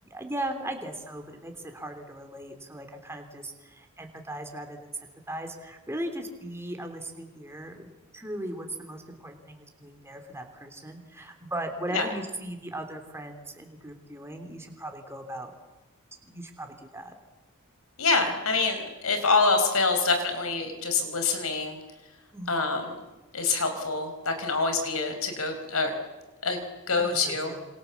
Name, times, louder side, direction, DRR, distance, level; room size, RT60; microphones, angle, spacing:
voice 1, 0.0-7.9 8.1-15.5 16.2-17.1 22.3-22.5 27.0-27.6, right 1 dB, 10° right, 5 dB, 3.4 m, -38 dB
voice 2, 18.0-21.8 22.5-23.0 23.3-25.9 26.4-26.6 26.9-27.5, left 4 dB, 75° left, 7 dB, 4.9 m, -26 dB
27.0 x 25.5 x 7.3 m, 1.1 s
head